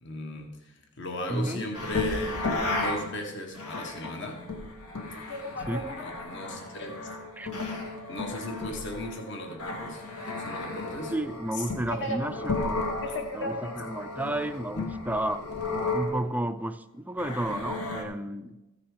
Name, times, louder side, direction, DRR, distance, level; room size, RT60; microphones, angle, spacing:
voice 1, 0.0-2.4 2.6-4.4 5.1-7.1 8.1-11.1 11.5-12.3 13.0-13.7, left 1 dB, 55° left, 3 dB, 1.4 m, -37 dB
voice 2, 1.3-1.7 5.7-5.9 7.4-7.5 11.1-12.8 13.3-15.5 15.9-18.6, right 1 dB, 5° right, 9 dB, 0.4 m, -32 dB
sound 1, 1.7-3.1 3.5-16.2 17.2-18.0, left 2 dB, 85° left, 1.7 m, -34 dB
14.5 x 5.8 x 4.9 m, 0.97 s
head